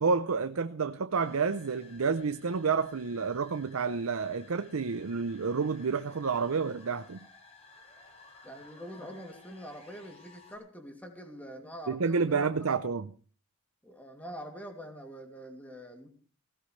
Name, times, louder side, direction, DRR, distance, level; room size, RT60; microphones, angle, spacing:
voice 1, 0.0-7.3 11.9-13.1, right 5 dB, 70° right, 0.6 m, -29 dB
sound 1, 1.1-10.6, left 3 dB, 30° left, 5.6 m, -56 dB
voice 2, 8.4-12.7 13.8-16.1, equal, 5° left, 2.6 m, -45 dB
19.0 x 16.5 x 3.2 m
head